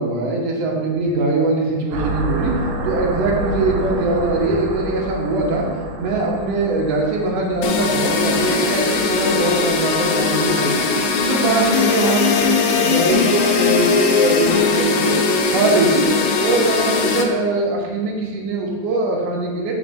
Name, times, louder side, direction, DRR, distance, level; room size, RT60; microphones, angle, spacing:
voice 1, 0.0-2.5 2.8-5.7 6.0-10.9 11.2-15.1 15.5-16.0 16.4-19.7, right 2 dB, 70° right, -3 dB, 1.5 m, -21 dB
sound 1, 1.9-11.5, right 2 dB, 85° right, 1.8 m, -29 dB
sound 2, 7.6-17.2, left 5 dB, 80° left, 2.3 m, -19 dB
4.5 x 4.5 x 5.2 m, 1.5 s
omnidirectional pair, 4.3 m